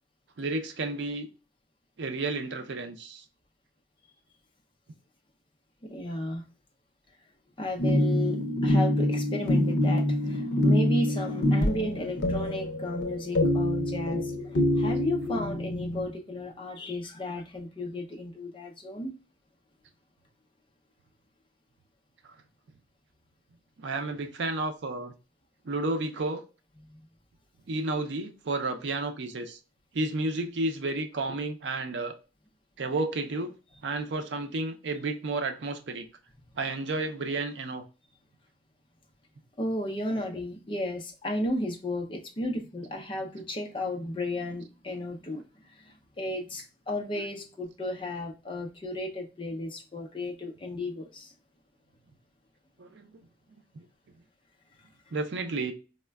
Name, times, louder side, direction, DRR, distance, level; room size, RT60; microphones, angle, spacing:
voice 1, 0.4-1.3 2.0-3.2 22.2-22.3 23.8-25.1 25.6-26.4 27.7-29.6 29.9-32.1 32.8-33.5 33.8-36.1 36.6-37.8 52.8-53.1 53.5-53.6 55.1-55.7, right 2 dB, 85° right, 0.5 m, -31 dB
voice 2, 5.8-6.4 7.6-19.1 26.9-27.0 39.6-51.3, left 1 dB, 30° left, 0.6 m, -34 dB
sound 1, 7.8-16.1, left 1 dB, 90° left, 0.6 m, -26 dB
4.1 x 2.1 x 2.2 m
head